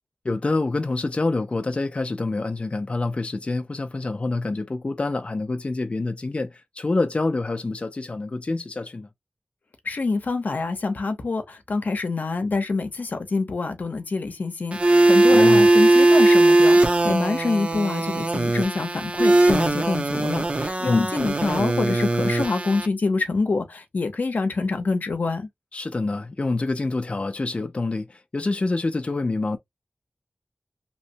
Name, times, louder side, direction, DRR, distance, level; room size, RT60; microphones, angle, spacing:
voice 1, 0.2-9.1 15.3-15.7 20.8-21.1 25.7-29.6, left 3 dB, 45° left, 0.4 m, -26 dB
voice 2, 9.8-25.5, left 3 dB, 85° left, 0.7 m, -26 dB
sound 1, 14.7-22.9, right 2 dB, 45° right, 0.6 m, -19 dB
2.9 x 2.1 x 2.7 m
wide cardioid pair, 70°, 3 cm